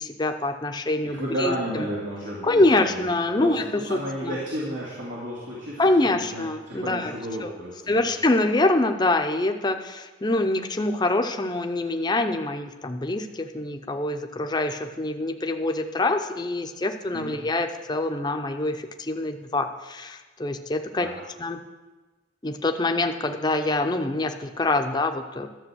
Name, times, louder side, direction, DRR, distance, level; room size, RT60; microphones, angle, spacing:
voice 1, 0.0-1.8 2.4-4.4 5.8-7.1 7.4-7.5 7.9-21.1 21.4-21.6 22.4-25.5, left 2 dB, 20° left, 6 dB, 0.6 m, -25 dB
voice 2, 1.1-3.1 3.4-8.1 17.1-17.5 21.0-21.2, equal, 85° right, -6 dB, 2.4 m, -33 dB
12.5 x 7.3 x 6.2 m, 1.2 s
head